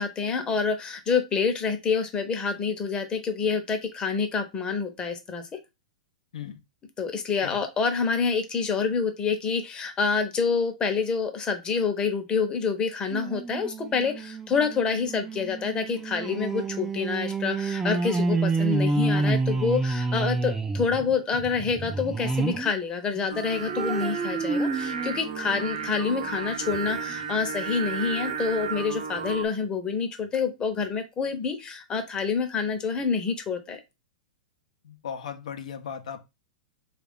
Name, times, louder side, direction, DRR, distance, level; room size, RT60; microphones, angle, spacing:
voice 1, 0.0-5.6 7.0-33.8, left 5 dB, 20° left, 0.8 m, -27 dB
sound 1, 13.1-22.7 23.1-26.2 26.7-26.8 27.1-27.2, right 3 dB, 10° right, 0.5 m, -29 dB
Singing, 23.3-29.5, right 6 dB, 65° right, 0.8 m, -33 dB
voice 2, 34.8-36.2, left 7 dB, 75° left, 0.7 m, -37 dB
3.2 x 2.4 x 3.6 m
hypercardioid pair, 115°, 4 cm